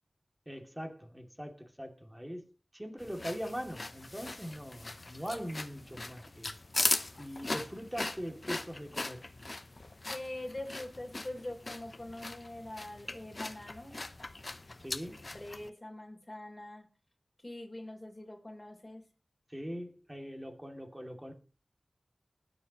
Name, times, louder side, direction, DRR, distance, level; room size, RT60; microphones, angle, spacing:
voice 1, 0.5-2.4 2.7-6.5 7.2-9.2 14.8-15.2 19.5-21.3, equal, 10° right, 2.5 m, -41 dB
sound 1, 3.0-15.7, left 2 dB, 45° left, 0.7 m, -39 dB
voice 2, 10.1-14.0 15.3-16.8 17.4-19.0, left 1 dB, 25° left, 3.5 m, -43 dB
20.0 x 7.1 x 3.0 m
cardioid pair, 45°, 0 cm